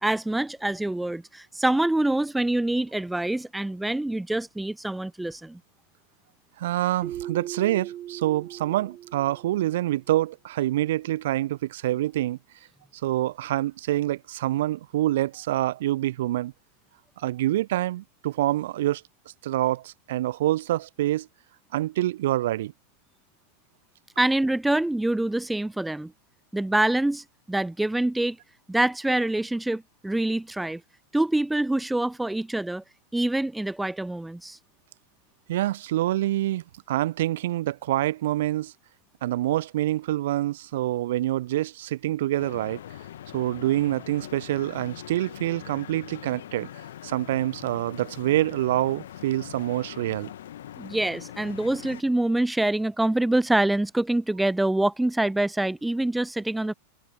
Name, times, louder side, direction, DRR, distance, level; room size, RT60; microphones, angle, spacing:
voice 1, 0.0-5.6 24.2-26.1 26.5-28.4 28.7-30.8 31.1-32.8 33.1-34.6 50.8-56.7, right 1 dB, 5° right, 0.3 m, -25 dB
voice 2, 6.6-12.4 13.0-16.5 17.2-19.0 19.4-21.3 21.7-22.7 35.5-38.7 39.2-42.8 43.3-46.7 47.0-50.3, right 14 dB, 55° right, 0.6 m, -26 dB
Keyboard (musical), 7.0-9.8, right 12 dB, 30° right, 1.2 m, -38 dB
sound 1, 42.4-52.0, left 11 dB, 60° left, 2.1 m, -42 dB
figure-of-eight pair, 90°, 0 cm